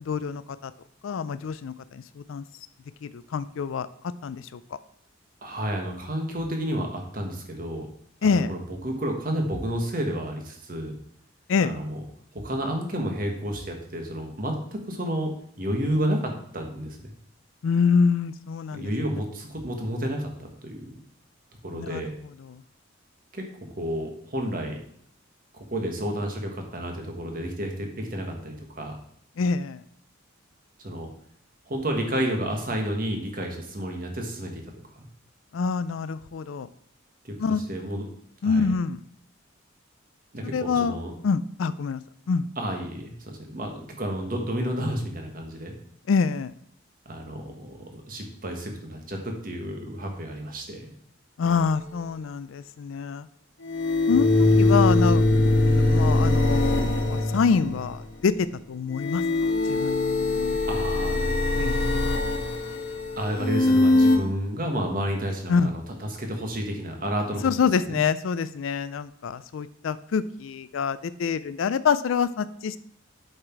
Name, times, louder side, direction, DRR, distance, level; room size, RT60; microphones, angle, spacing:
voice 1, 0.1-0.7 1.0-2.4 3.0-4.6 8.2-8.5 11.5-11.8 17.6-18.9 21.7-22.0 22.4-22.6 29.4-29.8 35.5-36.7 37.4-37.6 38.4-39.0 40.5-41.0 41.2-42.0 42.3-42.5 46.1-46.5 51.4-53.3 54.1-54.3 54.6-59.2 59.6-60.6 61.6-62.2 65.5-65.7 67.4-72.8, left 5 dB, 85° left, 15 dB, 0.4 m, -26 dB
voice 2, 5.4-7.9 8.2-10.9 11.6-12.0 12.3-15.3 15.6-17.1 18.7-20.9 21.6-22.1 23.3-23.4 23.8-24.8 25.5-28.9 30.8-31.1 31.7-34.6 37.2-37.3 37.7-38.0 38.4-38.7 40.3-41.1 42.6-45.7 47.0-50.9 60.7-62.1 63.2-67.5 67.9-68.0, equal, 45° right, 3 dB, 1.6 m, -31 dB
sound 1, 51.4-51.5 53.6-58.1 58.9-64.2, left 2 dB, 65° left, 1.3 m, -22 dB
7.9 x 5.9 x 4.6 m, 0.67 s
head